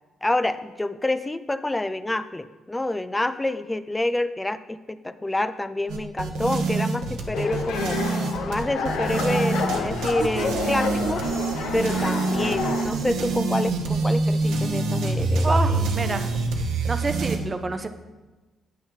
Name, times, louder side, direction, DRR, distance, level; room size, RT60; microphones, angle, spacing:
voice 1, 0.2-8.0 8.4-11.2 11.7-15.8, left 1 dB, 15° left, 13 dB, 0.4 m, -27 dB
sound 1, 5.9-17.4, right 3 dB, 85° right, 0.9 m, -25 dB
sound 2, 7.3-12.8, left 5 dB, 85° left, 0.8 m, -29 dB
voice 2, 15.4-16.3 16.9-17.9, right 3 dB, 25° right, 9 dB, 0.6 m, -27 dB
8.6 x 6.2 x 3.9 m, 1.2 s
cardioid pair, 90°, 0 cm